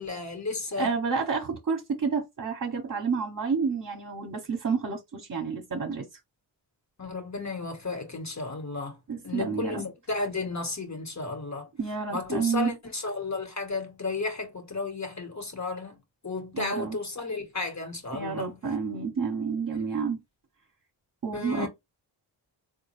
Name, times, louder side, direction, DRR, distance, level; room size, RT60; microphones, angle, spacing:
voice 1, 0.0-0.9 7.0-9.0 9.2-11.7 12.1-18.5 21.3-21.7, left 3 dB, 40° left, 1.4 m, -33 dB
voice 2, 0.8-6.1 9.1-9.8 11.8-12.7 16.5-17.0 18.1-20.2 21.2-21.7, right 5 dB, 45° right, 1.0 m, -29 dB
3.7 x 2.3 x 3.2 m
cardioid pair, 50°, 45 cm